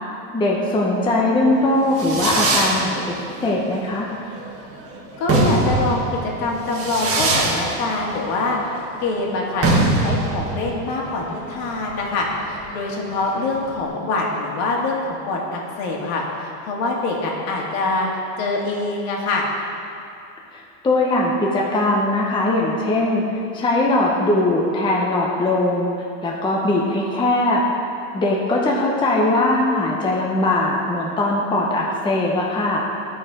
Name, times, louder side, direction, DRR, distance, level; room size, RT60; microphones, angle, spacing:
voice 1, 0.3-3.2 3.4-4.1 20.5-23.2 23.5-25.9 26.2-27.6 28.1-32.9, left 2 dB, 10° left, -2 dB, 0.8 m, -20 dB
Fireworks, 1.6-13.8, right 2 dB, 30° right, 1.6 m, -23 dB
voice 2, 5.2-8.6 9.0-18.1 18.4-19.5, left 2 dB, 60° left, -1 dB, 2.0 m, -24 dB
13.5 x 4.7 x 4.9 m, 2.6 s
supercardioid pair, 140°, 48 cm